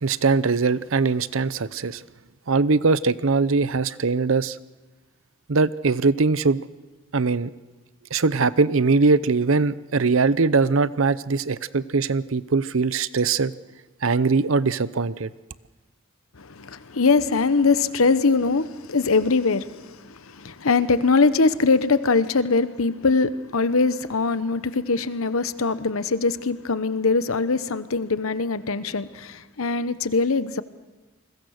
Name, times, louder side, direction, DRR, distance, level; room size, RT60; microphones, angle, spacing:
voice 1, 0.0-2.0 2.5-4.6 5.5-6.6 7.1-7.5 8.1-13.5 14.0-15.3, right 4 dB, 70° right, 0.7 m, -21 dB
voice 2, 16.4-30.6, left 4 dB, 80° left, 1.0 m, -22 dB
29.0 x 21.5 x 6.5 m
head